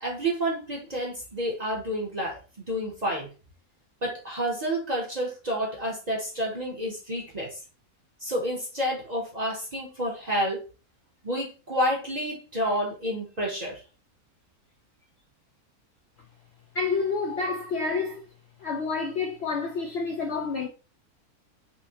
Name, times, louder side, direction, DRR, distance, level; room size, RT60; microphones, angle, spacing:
voice 1, 0.0-2.4 2.7-3.3 4.0-7.6 8.2-10.6 11.2-13.8, equal, 35° right, 0.7 m, -29 dB
voice 2, 16.7-18.2 18.6-20.7, left 4 dB, 65° left, 0.6 m, -29 dB
5.5 x 2.1 x 2.8 m
omnidirectional pair, 1.5 m